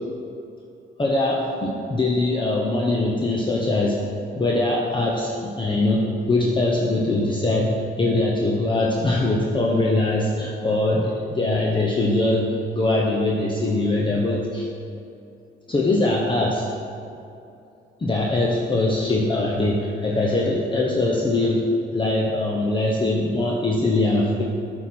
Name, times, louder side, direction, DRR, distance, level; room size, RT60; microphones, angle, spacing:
voice 1, 1.0-4.0 4.3-14.7 15.7-16.7 18.0-24.4, left 2 dB, 25° left, -3 dB, 0.9 m, -22 dB
7.8 x 4.3 x 6.1 m, 2.7 s
cardioid pair, 90°, 20 cm